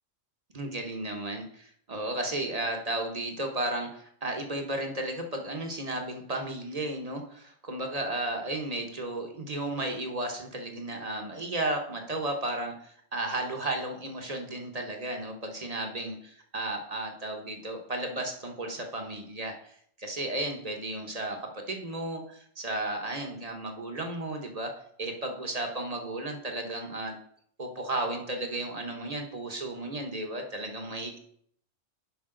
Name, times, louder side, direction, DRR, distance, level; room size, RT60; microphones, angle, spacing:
voice 1, 0.5-24.7 25.0-27.2 27.6-31.2, right 1 dB, 35° right, 3 dB, 1.1 m, -34 dB
10.5 x 5.2 x 3.8 m, 0.66 s
omnidirectional pair, 1.3 m